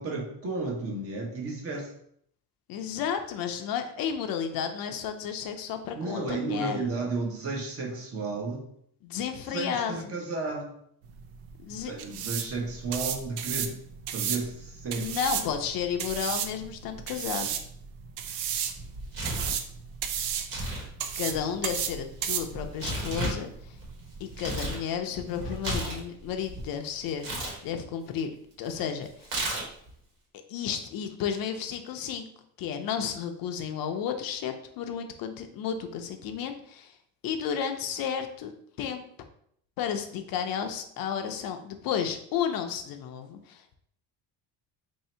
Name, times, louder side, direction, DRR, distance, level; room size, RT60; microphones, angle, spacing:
voice 1, 0.0-1.9 5.9-8.7 9.5-10.8 11.8-13.8 14.1-15.5, right 3 dB, 35° right, 0 dB, 0.9 m, -33 dB
voice 2, 2.7-6.8 9.0-10.0 11.6-11.9 14.9-17.6 21.2-23.8 24.2-27.3 27.6-28.3 28.6-29.3 30.5-32.3 32.6-36.9 37.2-39.0 39.8-43.8, left 8 dB, 60° left, 6 dB, 0.5 m, -32 dB
sound 1, 11.0-24.5, right 8 dB, 80° right, 0.6 m, -34 dB
Tearing, 18.8-19.6 20.4-20.9 21.1-24.8 25.2-26.7 27.2-27.6 29.2-29.9, right 1 dB, 55° right, 1.3 m, -33 dB
3.1 x 2.7 x 4.3 m, 0.68 s
cardioid pair, 140°, 39 cm